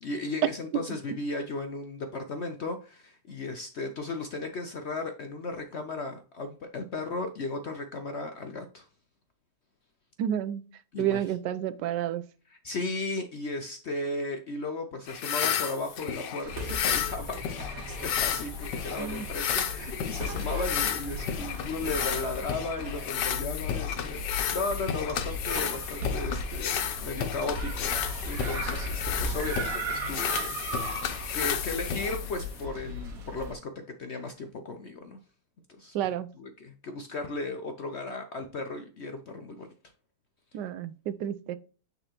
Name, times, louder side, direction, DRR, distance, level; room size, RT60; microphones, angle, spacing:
voice 1, 0.0-8.8 10.9-11.2 12.6-17.4 17.7-27.9 28.2-33.7 34.0-35.2 35.8-36.0 36.4-39.7, left 2 dB, 55° left, 0.7 m, -35 dB
voice 2, 10.2-10.6 11.0-12.2 19.0-19.3 35.9-36.3 40.5-41.6, right 10 dB, 80° right, 1.2 m, -30 dB
sound 1, 15.1-32.7, left 9 dB, 85° left, 1.5 m, -32 dB
sound 2, 16.4-33.5, left 1 dB, 55° right, 1.5 m, -36 dB
9.0 x 4.0 x 2.9 m
omnidirectional pair, 1.9 m